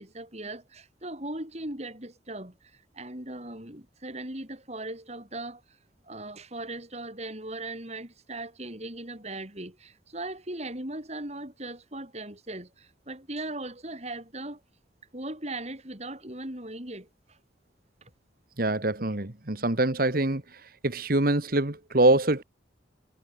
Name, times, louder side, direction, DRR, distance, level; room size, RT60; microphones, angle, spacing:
voice 1, 0.0-2.5 3.0-5.6 6.1-12.7 13.1-14.6 15.1-17.1, right 2 dB, 35° right, 5.8 m, -38 dB
voice 2, 18.6-20.4 20.8-22.4, right 2 dB, 50° right, 1.8 m, -24 dB
head